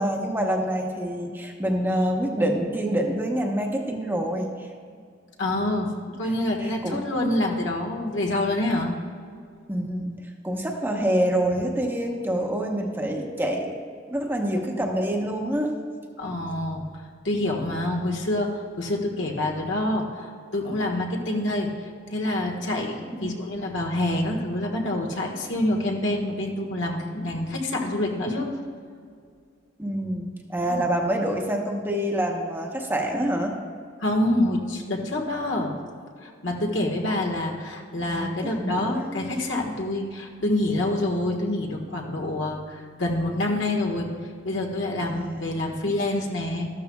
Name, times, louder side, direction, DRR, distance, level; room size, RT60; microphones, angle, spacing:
voice 1, 0.0-4.7 6.2-6.3 6.6-7.1 9.7-10.2 10.4-13.8 14.1-15.7 23.1-23.6 29.8-33.6 38.0-39.0 45.1-45.4, right 1 dB, 10° right, 1 dB, 1.0 m, -26 dB
voice 2, 5.4-8.9 16.2-16.8 17.2-28.6 30.7-30.8 34.0-35.7 36.2-44.1 44.4-46.7, left 1 dB, 75° left, 0 dB, 1.5 m, -27 dB
13.0 x 12.5 x 2.3 m, 2.1 s
head